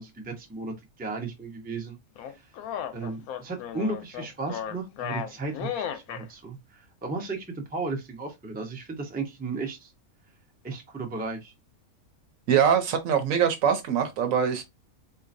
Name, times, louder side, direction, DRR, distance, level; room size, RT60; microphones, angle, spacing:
voice 1, 0.0-2.0 2.3-2.5 2.9-9.9 10.6-11.5, right 3 dB, 10° right, 0.5 m, -35 dB
sound 1, 2.2-6.3, left 9 dB, 85° left, 1.1 m, -35 dB
voice 2, 12.5-14.6, right 8 dB, 70° right, 1.1 m, -23 dB
3.9 x 2.8 x 2.5 m
omnidirectional pair, 1.5 m